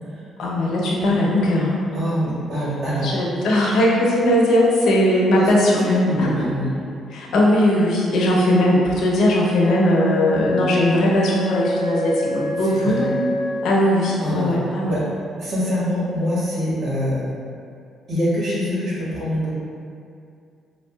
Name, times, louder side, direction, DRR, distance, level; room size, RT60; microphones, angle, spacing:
voice 1, 0.4-1.9 3.0-5.9 6.2-6.3 7.1-13.1 13.6-15.0, left 1 dB, 75° left, -4 dB, 0.7 m, -19 dB
voice 2, 1.9-3.1 5.4-5.5 5.8-6.7 12.7-13.2 14.2-14.5 14.8-15.0 15.4-17.2 18.1-19.5, left 1 dB, 65° right, -8 dB, 1.5 m, -24 dB
Wind instrument woodwind instrument, 9.6-14.2, left 2 dB, 50° left, 0.4 m, -27 dB
5.3 x 2.4 x 2.3 m, 2.4 s
cardioid pair, 95°, 0 cm